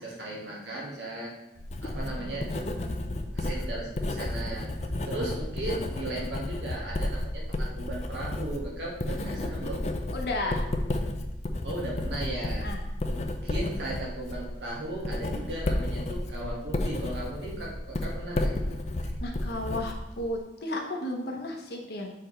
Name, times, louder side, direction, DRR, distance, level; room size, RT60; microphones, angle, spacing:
voice 1, 0.0-1.3 1.8-4.7 5.0-9.8 11.6-12.7 13.1-18.7 19.0-19.1, right 2 dB, 75° right, -4 dB, 1.7 m, -37 dB
Writing, 1.6-20.4, left 1 dB, 35° left, 0.4 m, -32 dB
voice 2, 9.2-9.7 10.1-10.6 12.6-12.8 19.2-22.1, left 1 dB, 60° left, 1 dB, 0.9 m, -34 dB
6.6 x 4.4 x 3.2 m, 0.94 s
head